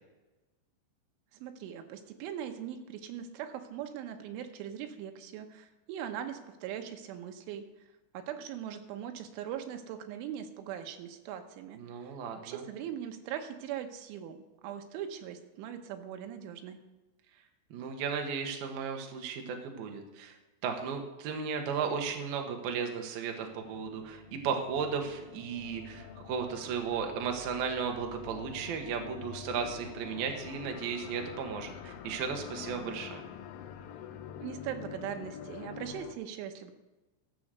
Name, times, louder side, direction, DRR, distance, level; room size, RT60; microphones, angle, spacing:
voice 1, 1.3-7.6 8.1-12.1 12.4-14.4 14.6-16.8 34.4-36.7, right 9 dB, 80° right, 6 dB, 3.4 m, -40 dB
voice 2, 11.8-12.6 17.7-20.3 20.6-33.2, right 6 dB, 65° right, 3 dB, 2.7 m, -35 dB
sound 1, 23.3-36.1, left 9 dB, 85° left, 3.3 m, -46 dB
14.0 x 7.0 x 6.7 m, 1.1 s
omnidirectional pair, 5.6 m